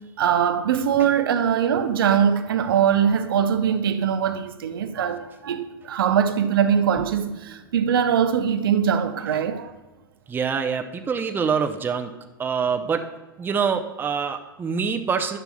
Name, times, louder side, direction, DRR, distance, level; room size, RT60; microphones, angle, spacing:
voice 1, 0.2-9.7, right 8 dB, 70° right, 0.6 m, -22 dB
voice 2, 10.3-12.1 12.4-13.0 13.4-15.4, right 6 dB, 15° right, 0.5 m, -25 dB
11.0 x 6.8 x 2.3 m
hypercardioid pair, 95°, 12 cm